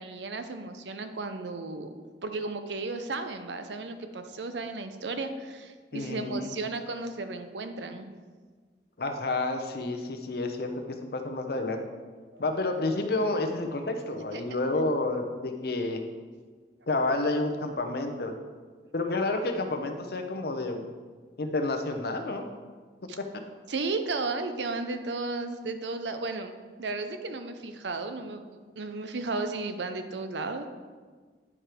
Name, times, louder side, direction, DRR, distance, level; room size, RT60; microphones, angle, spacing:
voice 1, 0.0-1.9 2.2-8.1 12.3-12.4 14.3-14.4 23.1-23.2 23.7-26.5 26.8-30.7, right 3 dB, 85° right, 8 dB, 0.7 m, -34 dB
voice 2, 5.9-6.5 9.0-11.8 12.4-16.0 16.9-18.3 18.9-20.9 21.4-22.4, left 2 dB, 60° left, 5 dB, 0.8 m, -30 dB
9.8 x 5.0 x 4.5 m, 1.5 s
head